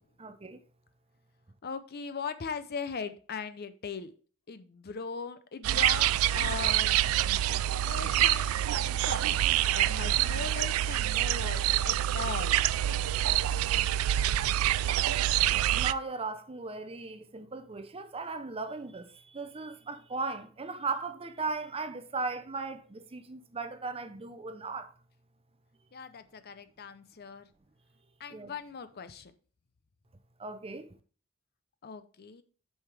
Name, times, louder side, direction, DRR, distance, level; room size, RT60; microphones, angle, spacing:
voice 1, 0.2-0.6 15.7-24.9 28.3-28.5 30.4-31.0, right 4 dB, 30° right, 0.7 m, -37 dB
voice 2, 1.6-4.1 4.5-7.1 7.8-12.6 25.9-27.5 28.2-29.3 31.8-32.4, left 5 dB, 50° left, 0.6 m, -39 dB
sound 1, 5.6-15.9, right 12 dB, 90° right, 0.3 m, -26 dB
7.8 x 5.5 x 3.4 m
head